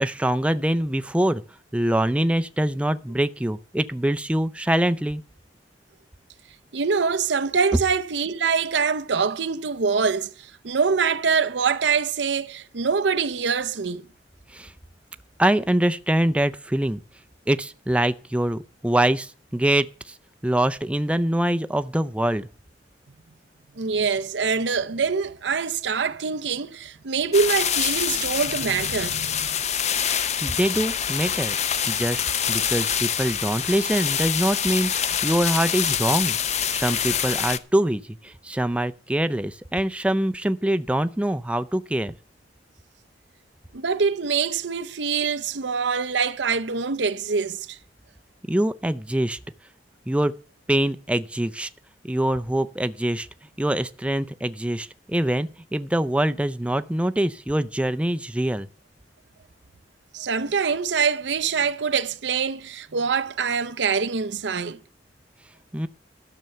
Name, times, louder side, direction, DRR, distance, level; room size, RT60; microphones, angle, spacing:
voice 1, 0.0-1.4 1.7-5.2 14.5-14.7 15.4-17.0 17.5-20.1 20.4-22.5 30.4-31.6 31.9-36.4 36.7-42.1 48.5-49.4 50.1-50.3 50.7-51.7 52.1-53.3 53.6-58.7 65.7-65.9, right 1 dB, 5° right, 0.5 m, -24 dB
voice 2, 6.7-14.0 23.8-29.6 43.7-47.8 60.1-64.8, right 5 dB, 90° right, 0.7 m, -24 dB
sound 1, 27.3-37.6, left 8 dB, 40° left, 0.7 m, -25 dB
12.5 x 6.8 x 7.7 m
head